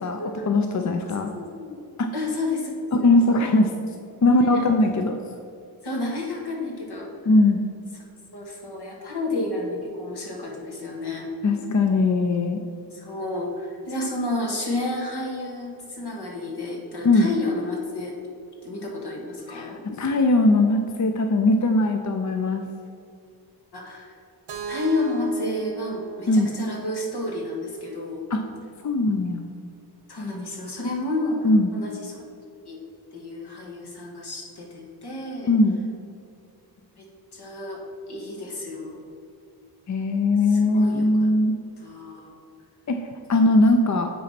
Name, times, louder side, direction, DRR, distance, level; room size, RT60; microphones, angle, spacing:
voice 1, 0.5-1.3 2.0-2.1 2.9-3.7 4.2-5.2 7.3-7.6 11.4-12.6 17.0-17.3 19.5-22.6 26.3-26.5 28.3-28.4 28.8-29.5 31.4-31.7 35.5-35.8 39.9-41.6 42.9-43.0 43.3-44.1, left 2 dB, 45° left, 5 dB, 0.6 m, -20 dB
voice 2, 1.0-1.8 2.1-3.1 4.4-4.6 5.8-7.1 8.3-11.3 12.9-18.1 18.6-19.8 23.7-24.2 24.7-28.2 30.1-31.4 31.7-32.2 32.7-32.8 33.1-35.5 37.0-37.1 37.3-37.8 38.1-39.0 40.5-41.3 41.8-42.4, left 2 dB, 75° left, -1 dB, 2.0 m, -31 dB
Keyboard (musical), 24.5-28.4, right 8 dB, 85° right, 0.9 m, -38 dB
9.4 x 4.1 x 5.9 m, 2.5 s
wide cardioid pair, 115°, 40 cm